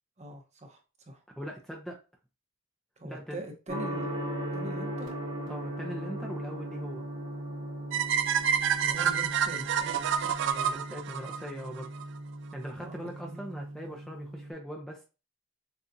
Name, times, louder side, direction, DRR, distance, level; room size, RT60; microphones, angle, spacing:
voice 1, 0.2-1.2 3.0-4.3 4.5-5.2 8.8-10.5 12.8-13.4, right 1 dB, 35° right, 4 dB, 0.9 m, -43 dB
voice 2, 1.4-2.0 3.0-3.4 5.5-7.0 10.4-11.9 12.5-15.0, equal, 5° left, 0 dB, 0.5 m, -41 dB
Gong, 3.7-14.5, right 1 dB, 85° right, 2.2 m, -38 dB
sound 1, 7.9-12.0, right 8 dB, 60° right, 0.4 m, -28 dB
6.7 x 2.4 x 2.6 m, 0.32 s
head